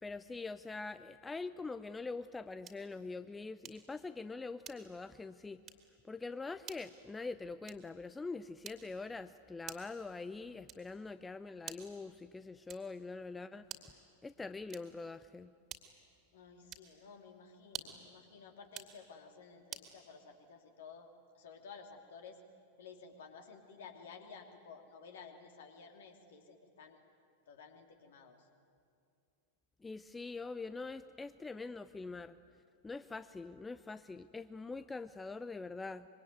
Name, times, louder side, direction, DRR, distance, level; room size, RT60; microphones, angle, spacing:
voice 1, 0.0-5.6 6.1-13.6 14.2-15.5 29.8-32.4 32.8-36.1, left 3 dB, 10° left, 13 dB, 0.6 m, -44 dB
sound 1, 2.6-3.0 3.6-4.0 4.6-5.1 5.6-5.9 6.6-6.9 7.6-8.0 8.6-9.1 9.7-10.0 10.7-11.0 11.6-12.0 12.7-13.0 13.6-14.0 14.7-15.1 15.7-16.1 16.7-17.0 17.6-18.1 18.6-19.0 19.7-20.0, right 8 dB, 30° right, 2.6 m, -49 dB
voice 2, 16.3-21.1 21.3-22.4 22.8-27.0 27.5-28.4, left 5 dB, 60° left, 5 dB, 3.0 m, -54 dB
25.0 x 23.5 x 9.5 m, 2.4 s
figure-of-eight pair, 90°, 0 cm